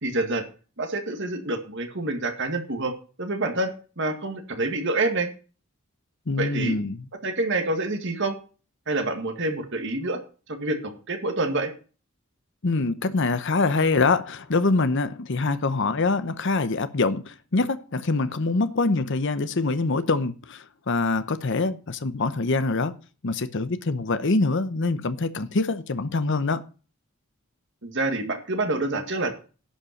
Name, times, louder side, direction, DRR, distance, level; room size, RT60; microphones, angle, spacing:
voice 1, 0.0-0.4 0.8-2.9 3.2-5.3 6.4-6.7 7.2-8.4 8.9-10.2 10.5-11.7 27.8-29.3, right 2 dB, 55° right, 1.9 m, -27 dB
voice 2, 6.3-7.1 12.6-23.0 23.2-26.6, left 3 dB, 55° left, 0.8 m, -24 dB
11.5 x 5.5 x 7.2 m
head